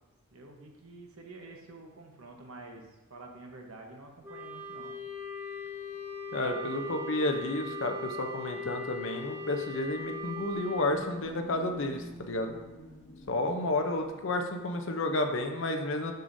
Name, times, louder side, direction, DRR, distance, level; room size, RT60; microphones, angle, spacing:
voice 1, 0.3-4.9 6.5-7.0, right 2 dB, 80° right, 1 dB, 1.0 m, -48 dB
Wind instrument woodwind instrument, 4.2-10.9, left 2 dB, 10° right, 0.6 m, -39 dB
voice 2, 6.3-12.6 13.3-16.1, left 2 dB, 60° left, 5 dB, 0.6 m, -31 dB
sound 1, 9.6-14.3, left 1 dB, 35° left, 1.7 m, -49 dB
6.6 x 6.4 x 2.7 m, 1.1 s
head